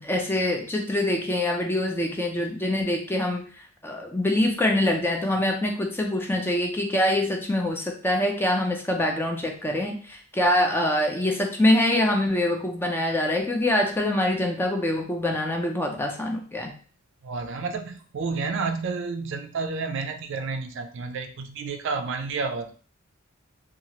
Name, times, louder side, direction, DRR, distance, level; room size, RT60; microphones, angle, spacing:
voice 1, 0.0-3.5 3.8-16.7, left 1 dB, 10° left, 2 dB, 0.4 m, -24 dB
voice 2, 17.2-22.7, right 4 dB, 60° right, 6 dB, 0.4 m, -30 dB
2.9 x 2.4 x 2.8 m, 0.41 s
head